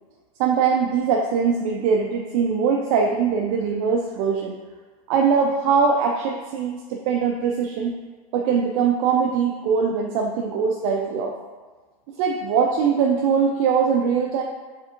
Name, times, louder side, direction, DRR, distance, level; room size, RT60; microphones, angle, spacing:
voice 1, 0.4-4.6 5.1-7.9 8.3-11.3 12.1-14.4, right 6 dB, 55° right, 1 dB, 0.5 m, -22 dB
4.5 x 3.5 x 3.0 m, 1.4 s
supercardioid pair, 125°, 20 cm